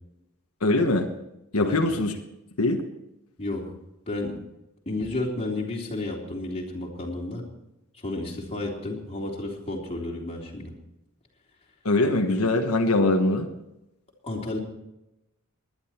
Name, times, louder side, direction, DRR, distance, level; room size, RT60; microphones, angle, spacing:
voice 1, 0.6-1.1 1.5-2.2 2.6-2.8 11.8-13.5, left 2 dB, 90° left, 4 dB, 1.4 m, -22 dB
voice 2, 1.6-1.9 3.4-3.7 4.1-4.4 4.8-7.4 8.0-10.7 14.2-14.6, left 2 dB, 30° left, -2 dB, 3.5 m, -31 dB
20.0 x 11.0 x 4.4 m, 0.90 s
head